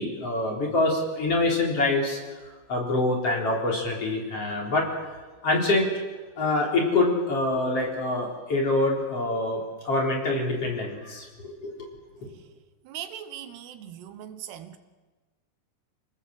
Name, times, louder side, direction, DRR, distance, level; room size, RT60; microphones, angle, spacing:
voice 1, 0.0-2.4 2.7-4.9 5.4-6.0 6.4-11.9, left 2 dB, 35° left, 0 dB, 4.8 m, -25 dB
voice 2, 12.8-14.8, right 10 dB, 80° right, 11 dB, 3.2 m, -39 dB
28.5 x 19.0 x 7.8 m, 1.3 s
omnidirectional pair, 4.8 m